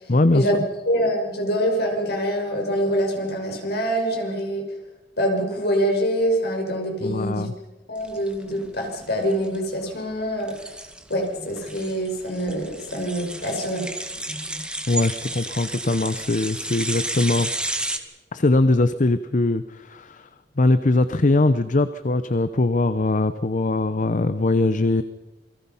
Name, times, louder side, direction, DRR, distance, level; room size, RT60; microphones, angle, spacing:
voice 1, 0.1-0.5 7.0-7.5 14.9-17.5 18.3-20.3 20.6-25.0, left 2 dB, 45° left, 12 dB, 0.8 m, -21 dB
voice 2, 0.9-4.6 5.2-7.5 7.9-10.6 11.1-13.9, equal, 65° left, 2 dB, 6.1 m, -25 dB
sound 1, 8.0-18.0, right 1 dB, 5° right, 2.0 m, -32 dB
28.5 x 22.5 x 5.7 m, 1.1 s
head